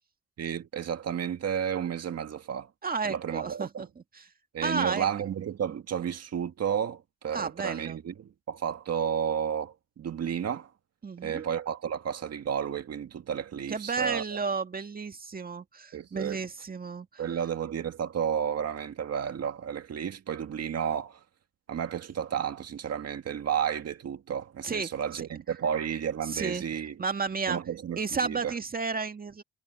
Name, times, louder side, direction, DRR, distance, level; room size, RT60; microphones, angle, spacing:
voice 1, 0.4-2.7 3.1-3.8 4.5-10.7 11.2-14.4 15.9-16.4 17.2-21.2 21.7-26.9 27.5-28.5, right 8 dB, 55° right, 1.9 m, -32 dB
voice 2, 2.8-4.3 4.6-5.1 7.3-8.0 11.0-11.4 13.7-17.2 24.6-25.3 26.2-27.6 28.0-29.4, right 4 dB, 30° right, 2.0 m, -33 dB
cardioid pair, 90°, 30 cm